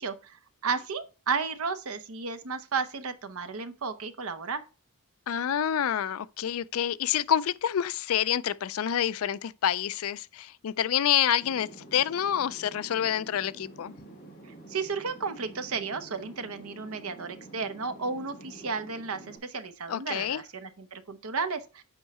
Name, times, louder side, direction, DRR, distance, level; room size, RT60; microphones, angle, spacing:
voice 1, 0.0-4.6 14.4-21.8, right 5 dB, 70° right, 0.9 m, -33 dB
voice 2, 5.3-13.9 19.9-20.4, left 9 dB, 65° left, 0.4 m, -28 dB
sound 1, 11.4-19.4, right 2 dB, 40° left, 2.4 m, -48 dB
8.1 x 4.7 x 4.2 m
head